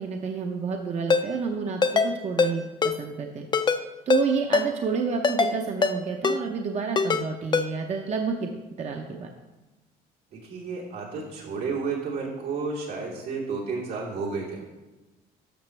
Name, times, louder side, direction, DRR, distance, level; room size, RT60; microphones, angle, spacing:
voice 1, 0.0-2.6 3.0-3.4 4.1-8.5 8.8-9.3, right 5 dB, 40° right, 3 dB, 0.8 m, -29 dB
Ringtone, 1.1-1.2 1.8-2.1 2.4-2.5 2.8-3.0 3.5-3.8 4.1-4.2 4.5-4.7 5.2-5.5 5.8-6.0 6.2-6.4 7.0-7.2 7.5-7.7, left 5 dB, 25° left, 0.5 m, -21 dB
voice 2, 10.4-14.6, right 4 dB, 85° right, -5 dB, 2.9 m, -31 dB
12.0 x 6.5 x 3.3 m, 1.1 s
cardioid pair, 110°, 17 cm